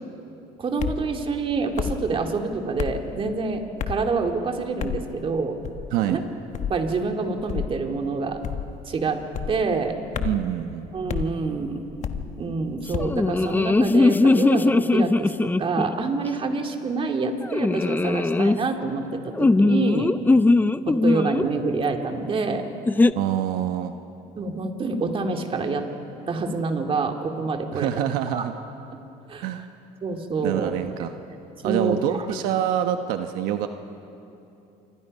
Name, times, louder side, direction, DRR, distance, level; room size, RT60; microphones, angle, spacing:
voice 1, 0.6-5.6 6.1-6.2 6.7-8.4 8.9-9.2 9.5-10.0 10.9-11.8 12.4-20.1 20.8-22.6 24.3-25.9 26.3-27.9 28.3-28.4 28.9-29.0 29.3-29.5 30.0-30.7 31.6-32.3, right 4 dB, 35° right, 4 dB, 2.6 m, -27 dB
sound 1, 0.8-1.0 1.8-2.0 2.8-3.0 3.8-4.1 4.8-5.1 5.6-5.9 6.5-6.8 7.5-7.8 8.4-8.8 9.3-9.6 10.1-10.5 11.1-11.3 12.0-12.3 12.9-13.2, left 8 dB, 50° left, 1.4 m, -29 dB
voice 2, 10.2-10.9 23.2-23.9 27.7-28.5 29.4-29.6 30.4-31.1 31.6-33.7, right 11 dB, 80° right, 7 dB, 1.1 m, -26 dB
sound 2, 13.0-16.0 17.5-18.6 19.4-21.5 22.9-23.1, left 3 dB, 10° left, 0.6 m, -19 dB
28.0 x 25.5 x 5.5 m, 2.8 s
cardioid pair, 105°, 15 cm